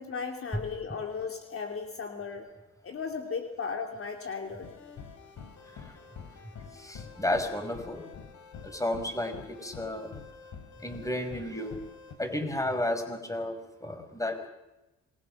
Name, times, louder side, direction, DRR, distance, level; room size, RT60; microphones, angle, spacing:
voice 1, 0.0-2.5 2.8-4.7, left 5 dB, 45° left, 4 dB, 3.1 m, -36 dB
sound 1, 4.6-12.2, left 6 dB, 70° left, 4.1 m, -47 dB
voice 2, 6.7-8.0 8.6-10.1 10.8-11.7 12.2-13.6 13.8-14.5, left 1 dB, 10° left, 7 dB, 5.1 m, -32 dB
27.5 x 21.5 x 6.7 m, 1.0 s
cardioid pair, 90°, 30 cm